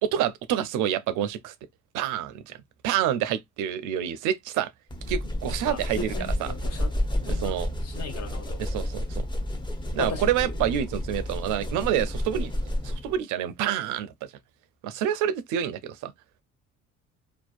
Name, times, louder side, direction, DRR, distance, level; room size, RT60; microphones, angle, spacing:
voice 1, 0.0-1.5 1.9-2.6 2.8-4.7 5.1-6.5 7.2-7.7 8.6-9.3 9.9-12.5 12.8-14.3 14.8-16.1, right 10 dB, 70° right, 0.5 m, -28 dB
sound 1, 4.9-13.2, left 1 dB, 15° left, 0.6 m, -30 dB
voice 2, 5.6-6.9 7.3-7.6 7.8-8.6 10.0-10.2, left 5 dB, 50° left, 0.8 m, -36 dB
2.5 x 2.1 x 2.3 m
hypercardioid pair, 55°, 32 cm